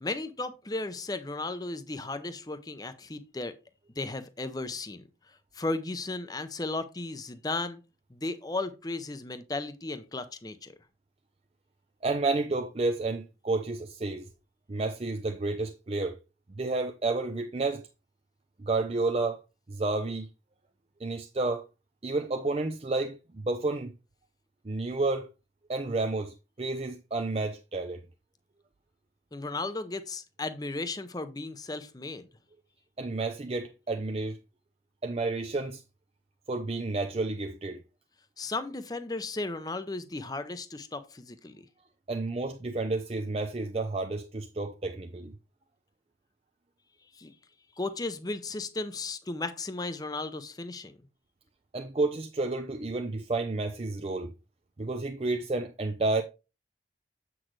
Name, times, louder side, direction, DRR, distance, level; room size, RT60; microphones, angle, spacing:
voice 1, 0.0-3.5 4.0-5.0 5.5-7.8 8.1-10.7 29.3-32.2 38.4-41.6 47.2-47.3 47.8-51.0, left 2 dB, 20° left, 0.6 m, -35 dB
voice 2, 12.0-14.3 14.7-16.2 16.6-17.8 18.6-19.4 19.7-20.3 21.0-21.6 22.0-23.9 24.6-25.3 25.7-28.0 33.0-34.4 35.0-35.8 36.5-37.8 42.1-45.3 51.7-54.3 54.8-56.2, right 3 dB, 35° right, 0.5 m, -30 dB
7.6 x 6.0 x 3.2 m
head